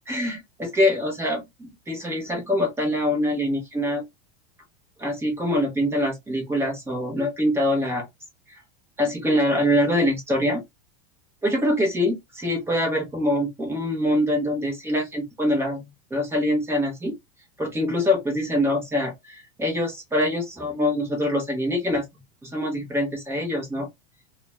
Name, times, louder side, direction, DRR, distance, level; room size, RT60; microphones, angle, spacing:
voice 1, 0.1-4.0 5.0-8.0 8.5-8.6 9.0-10.6 11.4-15.8 16.1-17.1 17.6-22.0 22.4-23.9, left 1 dB, 5° right, 0.6 m, -24 dB
2.3 x 2.1 x 2.9 m
supercardioid pair, 165°, 33 cm